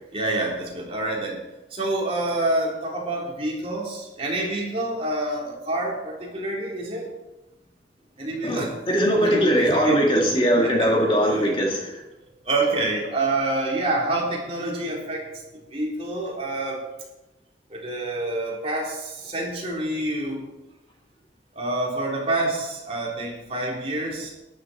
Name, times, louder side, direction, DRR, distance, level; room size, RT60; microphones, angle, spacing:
voice 1, 0.1-1.4 1.7-7.1 8.2-8.7 9.2-10.2 10.6-11.5 12.4-15.2 15.7-16.8 17.7-20.4 21.5-24.3, right 2 dB, 30° right, -3 dB, 3.6 m, -27 dB
voice 2, 8.4-11.8, equal, 25° left, -1 dB, 1.9 m, -20 dB
13.5 x 11.0 x 4.3 m, 1.0 s
head